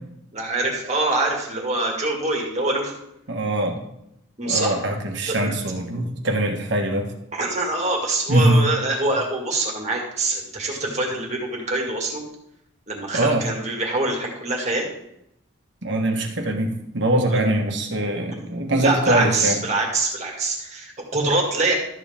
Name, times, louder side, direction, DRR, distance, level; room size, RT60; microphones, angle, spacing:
voice 1, 0.3-2.9 4.4-4.8 5.3-5.5 7.3-12.2 12.9-14.9 17.3-17.4 18.8-21.8, right 2 dB, 35° right, -1 dB, 2.0 m, -24 dB
voice 2, 3.3-3.8 4.4-7.1 8.3-8.6 13.1-13.5 15.8-19.6, right 1 dB, 60° right, 3 dB, 1.5 m, -22 dB
13.0 x 7.4 x 3.6 m, 0.79 s
head